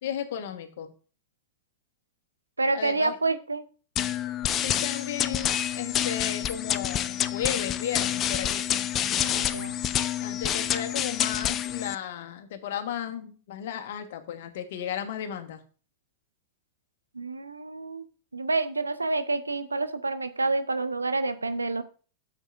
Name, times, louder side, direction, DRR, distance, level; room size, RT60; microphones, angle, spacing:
voice 1, 0.0-0.9 2.7-3.1 4.6-8.6 10.2-15.6, left 9 dB, 60° left, 7 dB, 1.4 m, -34 dB
voice 2, 2.6-3.6 9.2-9.8 17.1-18.0 18.3-21.8, right 3 dB, 85° right, 10 dB, 0.8 m, -28 dB
sound 1, 4.0-12.0, left 10 dB, 35° left, 0.6 m, -28 dB
13.0 x 7.3 x 2.6 m, 0.38 s
figure-of-eight pair, 90°, 0 cm